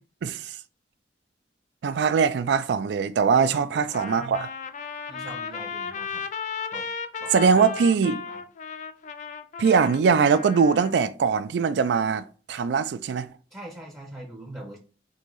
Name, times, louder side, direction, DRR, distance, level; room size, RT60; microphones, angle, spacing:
voice 1, 0.2-0.6 1.8-4.5 7.3-8.2 9.6-13.3, right 5 dB, 70° right, 0.3 m, -22 dB
voice 2, 3.3-4.2 5.1-6.2 6.7-6.9 7.2-8.0 8.3-8.4 13.5-14.8, right 1 dB, 15° right, 0.6 m, -42 dB
Trumpet, 3.9-10.9, left 6 dB, 45° left, 0.3 m, -35 dB
3.7 x 2.6 x 3.0 m
head